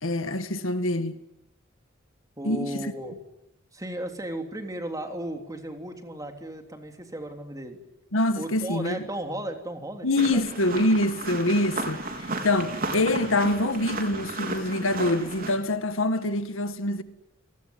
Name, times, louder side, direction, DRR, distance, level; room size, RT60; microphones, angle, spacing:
voice 1, 0.0-1.2 2.4-2.9 8.1-9.0 10.0-17.0, left 1 dB, 90° left, 1.8 m, -25 dB
voice 2, 2.4-3.1 3.7-7.8 8.3-10.4, right 1 dB, 20° right, 3.4 m, -35 dB
sound 1, 10.2-15.5, right 2 dB, 45° right, 4.6 m, -34 dB
29.0 x 19.0 x 9.5 m
head